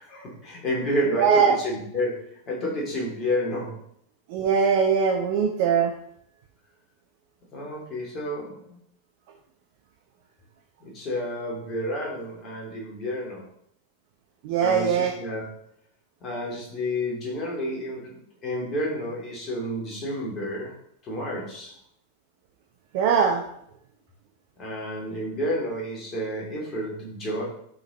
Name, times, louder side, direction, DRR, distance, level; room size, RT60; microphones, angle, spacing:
voice 1, 0.0-3.8 7.5-8.8 10.8-13.4 14.6-15.4 16.2-18.1 18.4-20.7 21.0-21.7 24.6-27.4, equal, 30° left, -2 dB, 3.2 m, -30 dB
voice 2, 1.1-1.6 4.3-5.9 14.4-15.1 22.9-23.4, right 6 dB, 50° right, 2 dB, 1.0 m, -21 dB
11.5 x 6.3 x 3.3 m, 0.70 s
figure-of-eight pair, 90°, 0 cm